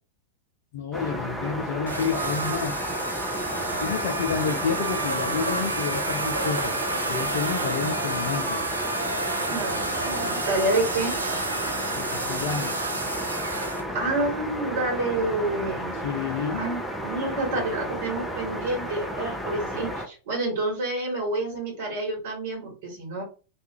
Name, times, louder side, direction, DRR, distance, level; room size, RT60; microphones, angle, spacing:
voice 1, 0.7-2.8 3.8-6.7 7.1-8.6 11.9-12.8 16.0-16.6, left 6 dB, 55° left, 3 dB, 0.4 m, -29 dB
sound 1, 0.9-20.1, equal, ahead, 0.5 m, -33 dB
sound 2, 1.9-13.8, right 2 dB, 80° right, 0.4 m, -30 dB
voice 2, 9.5-11.1 13.9-15.9 16.5-23.2, right 2 dB, 50° right, -1 dB, 1.4 m, -28 dB
2.4 x 2.3 x 2.9 m, 0.34 s
figure-of-eight pair, 90°, 0 cm